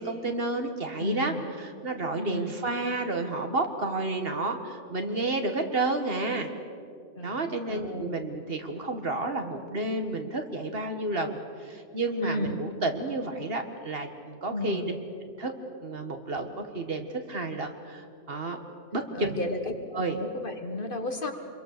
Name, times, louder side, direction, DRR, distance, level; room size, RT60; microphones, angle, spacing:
voice 1, 0.0-1.4 1.8-6.5 7.2-14.9 15.4-15.5 15.8-18.6 18.9-19.4 19.9-20.2, right 2 dB, 55° right, 6 dB, 1.8 m, -31 dB
voice 2, 1.0-1.4 2.1-2.5 7.1-8.1 12.2-12.6 14.5-14.9 19.1-19.6 20.1-21.3, left 1 dB, 50° left, 6 dB, 1.7 m, -33 dB
27.0 x 22.5 x 6.7 m, 2.3 s
omnidirectional pair, 1.2 m